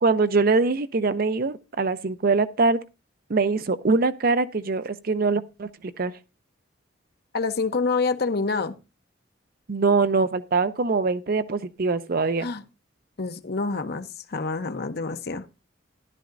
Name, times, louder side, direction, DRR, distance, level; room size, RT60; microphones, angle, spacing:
voice 1, 0.0-2.8 3.3-5.7 6.0-6.1 9.7-12.5, right 3 dB, 50° right, 0.6 m, -23 dB
voice 2, 7.3-8.8 12.4-12.6 13.2-15.5, left 4 dB, 55° left, 0.8 m, -27 dB
13.0 x 11.5 x 2.6 m
head